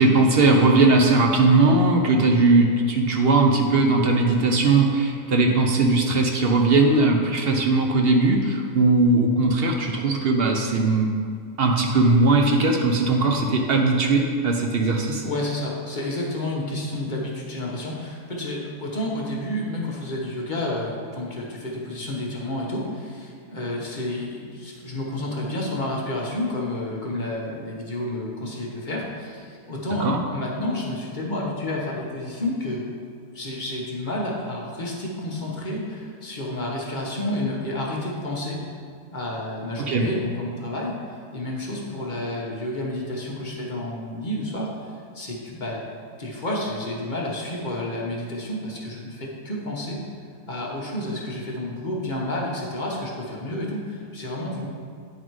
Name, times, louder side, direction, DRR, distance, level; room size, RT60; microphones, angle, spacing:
voice 1, 0.0-11.1 11.6-15.2 30.0-30.2 39.9-40.1, right 3 dB, 55° right, 1 dB, 0.8 m, -19 dB
voice 2, 15.2-32.8 33.3-38.6 39.1-45.8 46.2-50.0 50.5-54.7, left 1 dB, 35° left, -3 dB, 1.1 m, -30 dB
9.4 x 3.9 x 4.6 m, 2.1 s
omnidirectional pair, 1.5 m